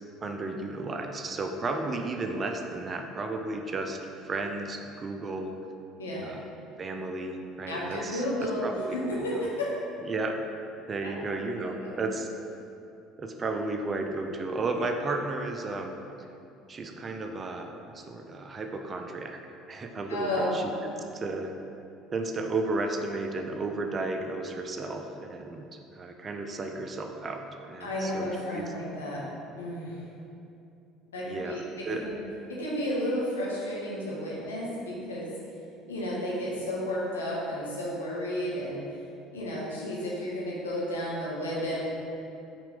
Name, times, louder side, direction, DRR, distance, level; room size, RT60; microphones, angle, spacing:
voice 1, 0.2-5.5 6.2-6.4 6.8-9.0 9.3-9.4 10.0-10.5 10.9-12.3 13.2-15.9 16.7-21.5 22.1-28.7 31.2-32.1, right 2 dB, 30° right, 4 dB, 0.6 m, -33 dB
voice 2, 7.7-10.0 11.0-12.0 20.1-20.6 27.8-29.2 29.6-30.0 31.1-32.1 32.5-35.3 35.9-38.8 39.3-41.9, equal, 80° left, -5 dB, 1.4 m, -32 dB
5.9 x 4.6 x 5.2 m, 2.7 s
figure-of-eight pair, 60°, 0 cm